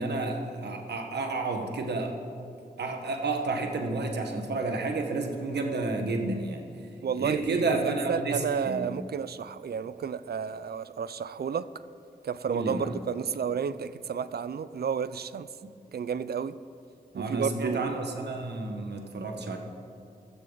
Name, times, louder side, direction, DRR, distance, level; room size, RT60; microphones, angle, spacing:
voice 1, 0.0-2.1 2.8-6.6 7.2-8.9 12.5-13.0 17.1-19.6, right 3 dB, 85° right, 4 dB, 1.4 m, -30 dB
voice 2, 7.0-11.7 12.2-15.5 15.9-16.6 17.1-17.9, right 7 dB, 70° right, 15 dB, 0.5 m, -31 dB
15.5 x 14.0 x 4.0 m, 2.4 s
cardioid pair, 45°, 17 cm